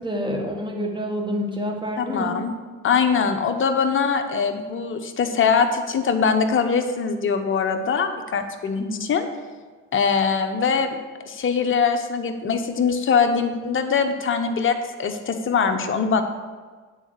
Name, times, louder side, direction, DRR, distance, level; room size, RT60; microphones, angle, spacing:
voice 1, 0.0-2.4 8.8-9.1, equal, 15° right, 1 dB, 1.8 m, -28 dB
voice 2, 2.0-2.5 2.8-9.3 9.9-11.0 11.3-16.2, left 5 dB, 35° left, 6 dB, 0.9 m, -22 dB
8.9 x 4.0 x 6.5 m, 1.4 s
hypercardioid pair, 70°, 35 cm